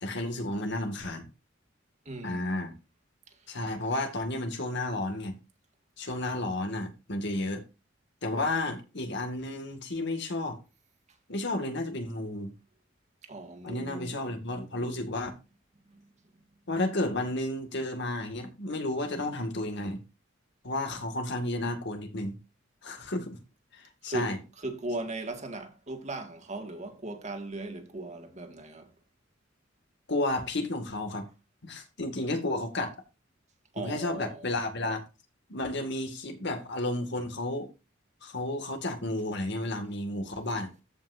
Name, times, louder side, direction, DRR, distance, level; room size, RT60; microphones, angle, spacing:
voice 1, 0.0-1.3 2.2-2.7 3.5-5.4 6.0-7.6 8.2-10.6 11.3-12.5 13.6-15.3 16.7-20.0 20.6-22.4 22.8-23.4 23.7-24.4 30.1-31.3 31.6-32.9 33.8-35.0 35.5-37.7 38.2-40.7, left 2 dB, 60° left, 2.1 m, -32 dB
voice 2, 2.1-2.6 13.2-14.1 24.0-24.3 24.6-28.9 33.7-34.4, right 2 dB, 35° right, 1.9 m, -38 dB
14.0 x 5.8 x 2.6 m
head